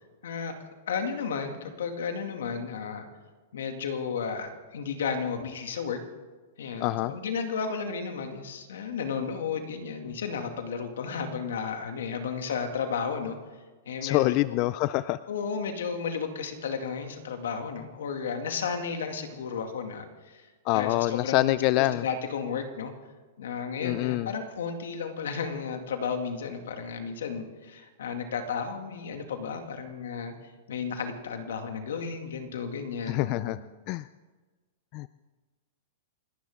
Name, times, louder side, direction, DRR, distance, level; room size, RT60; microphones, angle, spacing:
voice 1, 0.2-0.5 0.9-3.1 3.5-6.0 6.6-13.4 13.9-14.4 15.3-20.4 20.7-22.9 23.4-30.3 30.7-33.6, left 6 dB, 85° left, 5 dB, 2.3 m, -33 dB
voice 2, 6.8-7.1 14.0-15.2 20.7-22.0 23.8-24.3 33.1-33.6 33.9-34.1 34.9-35.1, left 18 dB, 40° left, 16 dB, 0.4 m, -25 dB
29.5 x 11.0 x 3.7 m, 1.3 s
hypercardioid pair, 140°, 0 cm